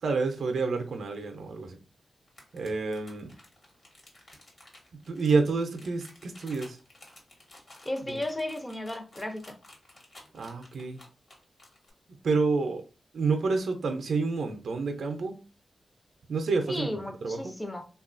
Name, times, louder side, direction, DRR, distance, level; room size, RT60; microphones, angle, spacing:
voice 1, 0.0-1.8 2.5-3.3 5.1-6.8 8.1-8.2 10.3-11.0 12.2-12.8 13.1-15.4 16.3-17.5, right 4 dB, 75° right, 5 dB, 0.4 m, -29 dB
sound 1, 2.3-11.9, left 1 dB, 40° left, 1.1 m, -53 dB
voice 2, 7.9-9.4 16.7-17.8, left 1 dB, 15° left, 6 dB, 0.5 m, -34 dB
3.6 x 2.3 x 2.4 m, 0.34 s
wide cardioid pair, 155°, 0 cm